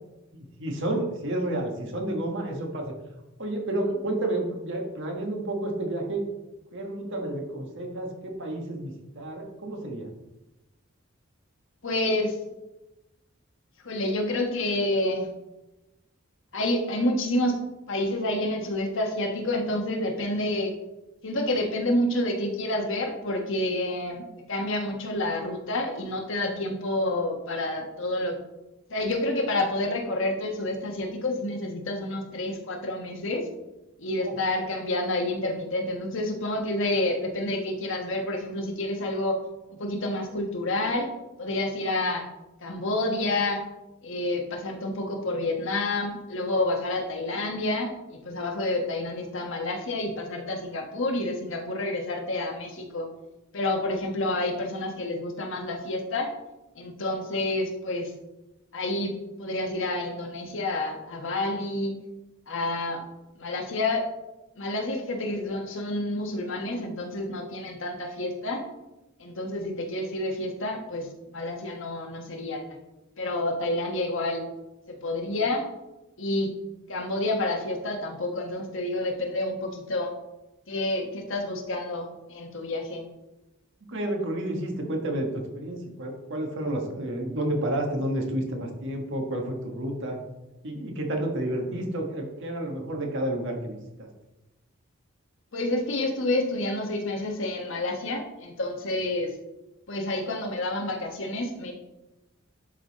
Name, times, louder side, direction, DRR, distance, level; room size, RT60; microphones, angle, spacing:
voice 1, 0.6-2.9 3.4-6.2 6.7-10.1 34.2-34.3 83.9-90.2 90.6-94.1, right 1 dB, 65° right, 2 dB, 1.5 m, -30 dB
voice 2, 11.8-12.4 13.8-15.3 16.5-20.7 21.2-28.4 28.9-33.5 34.0-39.4 39.7-41.1 41.4-42.2 42.6-43.6 44.0-53.1 53.5-56.3 56.8-58.1 58.7-61.9 62.5-63.0 63.4-64.1 64.6-68.6 69.2-72.6 73.2-74.5 75.0-75.7 76.2-76.5 76.9-80.1 80.7-83.0 95.5-99.3 99.9-101.7, left 1 dB, 65° left, 2 dB, 1.3 m, -29 dB
11.0 x 4.0 x 4.1 m, 0.99 s
head